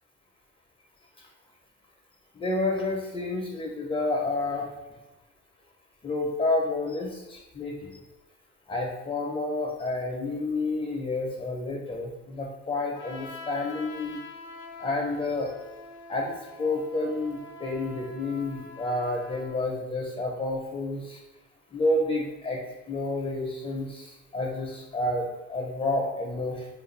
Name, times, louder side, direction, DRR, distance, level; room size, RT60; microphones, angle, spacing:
voice 1, 2.3-4.7 6.0-8.0 8.7-14.2 14.8-15.5 16.1-21.2 21.7-22.6 22.9-26.7, left 2 dB, 20° left, 0 dB, 0.4 m, -30 dB
Trumpet, 12.9-19.6, left 3 dB, 75° left, 0.5 m, -45 dB
2.4 x 2.3 x 3.0 m, 1.1 s
cardioid pair, 90°, 30 cm